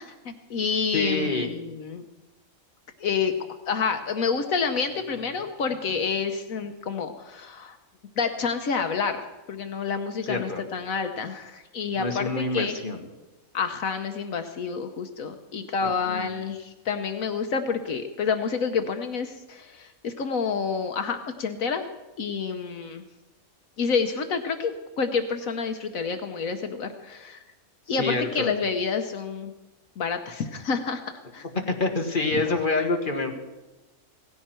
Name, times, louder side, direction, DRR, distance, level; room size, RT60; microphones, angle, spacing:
voice 1, 0.0-2.0 3.0-3.3 3.7-7.8 8.2-9.2 9.5-12.7 13.5-21.9 22.2-23.0 23.8-27.4 27.9-29.5 30.0-31.0 31.3-31.5 32.3-32.4, left 5 dB, 70° left, 7 dB, 1.3 m, -28 dB
voice 2, 0.9-1.5 10.3-10.6 12.0-13.0 15.8-16.3 27.9-28.5 31.7-33.3, left 3 dB, 35° left, 3 dB, 1.8 m, -27 dB
17.5 x 15.5 x 4.4 m, 1.1 s
omnidirectional pair, 1.5 m